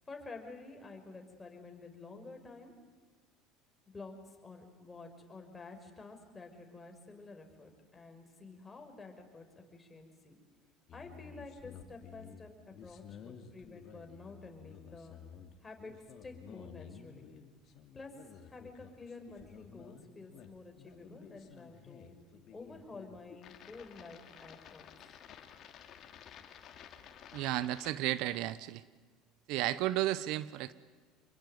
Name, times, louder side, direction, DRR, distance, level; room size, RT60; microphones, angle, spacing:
voice 1, 0.1-2.7 3.9-10.4 10.9-15.2 15.6-17.3 17.9-18.1 18.4-22.1 22.5-24.9, left 3 dB, 20° left, 4 dB, 5.8 m, -50 dB
sound 1, 10.9-27.9, left 8 dB, 50° left, 2.8 m, -53 dB
voice 2, 27.3-28.8 29.5-30.7, right 15 dB, 70° right, 16 dB, 0.9 m, -33 dB
27.0 x 22.5 x 9.4 m, 1.4 s
supercardioid pair, 95°, 0 cm